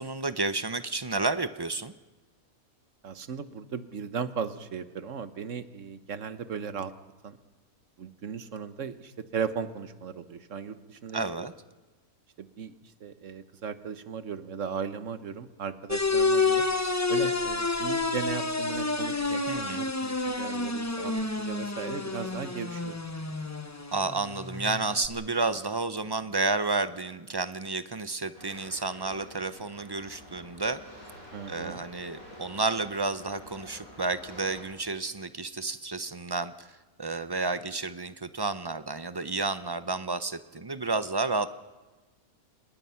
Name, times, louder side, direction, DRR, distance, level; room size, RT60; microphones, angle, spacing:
voice 1, 0.0-1.9 11.1-11.5 19.5-19.8 23.9-30.8 31.5-41.5, right 3 dB, 40° right, 13 dB, 0.3 m, -31 dB
voice 2, 3.0-6.9 7.2-7.4 8.0-11.5 12.4-16.7 17.1-22.9 31.3-31.8, right 6 dB, 60° right, 12 dB, 1.3 m, -37 dB
sound 1, 15.9-25.1, left 3 dB, 15° left, 0.9 m, -29 dB
sound 2, 28.3-34.6, left 1 dB, 75° left, 8.0 m, -48 dB
26.0 x 20.5 x 5.7 m, 1.2 s
omnidirectional pair, 1.5 m